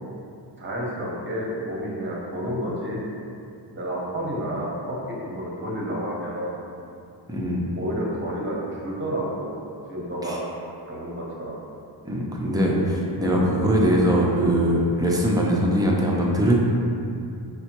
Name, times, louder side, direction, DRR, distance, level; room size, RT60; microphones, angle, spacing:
voice 1, 0.6-3.0 3.7-5.0 5.2-6.6 7.7-9.5 9.9-10.4 10.9-11.6 13.2-13.5, equal, 25° right, -4 dB, 0.7 m, -30 dB
voice 2, 7.3-7.7 10.2-10.4 12.0-16.5, equal, 10° right, -3 dB, 0.3 m, -21 dB
5.4 x 2.1 x 2.9 m, 2.5 s
wide cardioid pair, 130°, 45 cm